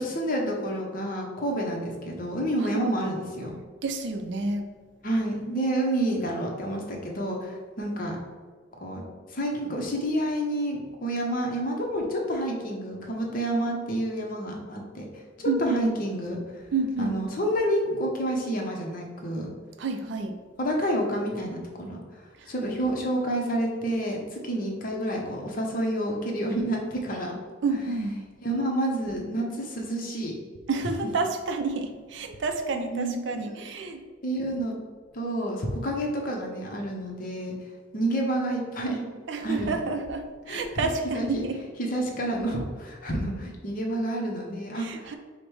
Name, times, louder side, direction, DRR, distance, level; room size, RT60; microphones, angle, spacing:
voice 1, 0.0-3.6 5.0-8.2 8.8-15.1 15.4-16.4 17.0-19.5 20.6-22.0 22.5-27.4 28.4-30.3 32.9-33.7 34.2-34.7 35.1-37.5 37.9-39.0 39.4-39.8 40.5-40.6 41.1-41.4 41.8-45.1, right 1 dB, 45° left, 0 dB, 0.7 m, -29 dB
voice 2, 3.8-4.7 15.5-15.9 16.7-17.2 19.8-20.4 22.4-22.5 27.6-28.2 30.7-34.0 39.3-41.6 44.8-45.2, right 3 dB, 60° right, 6 dB, 0.4 m, -29 dB
5.1 x 2.1 x 4.6 m, 1.5 s
head